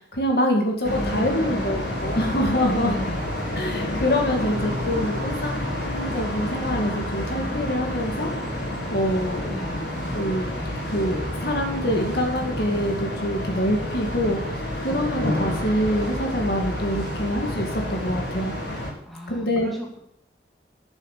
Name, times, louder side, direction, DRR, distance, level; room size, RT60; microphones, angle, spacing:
voice 1, 0.1-2.9 3.6-8.3 8.9-9.6 10.1-10.6 10.9-14.4 14.8-18.6 19.3-19.7, equal, 60° left, 1 dB, 2.3 m, -25 dB
sound 1, 0.8-18.9, left 1 dB, 80° left, 4.5 m, -29 dB
voice 2, 0.9-2.0 2.7-3.3 4.3-5.0 9.4-9.9 19.1-20.0, equal, ahead, -2 dB, 2.4 m, -35 dB
10.5 x 7.4 x 8.5 m, 0.74 s
head